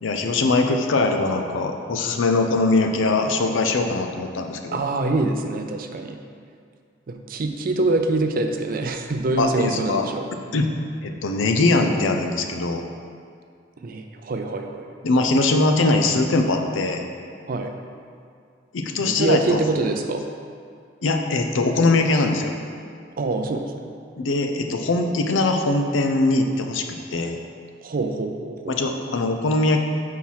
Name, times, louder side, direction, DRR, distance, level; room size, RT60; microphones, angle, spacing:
voice 1, 0.0-4.8 9.4-10.1 10.5-10.7 11.0-12.8 15.0-17.0 18.7-19.6 21.0-22.5 24.2-27.4 28.7-29.8, left 2 dB, 85° left, 4 dB, 0.5 m, -21 dB
voice 2, 4.7-6.2 7.1-10.2 13.8-14.9 17.5-17.7 19.0-20.2 23.2-23.8 27.8-28.8, right 2 dB, 50° right, 5 dB, 0.5 m, -25 dB
4.5 x 4.3 x 5.6 m, 2.2 s
head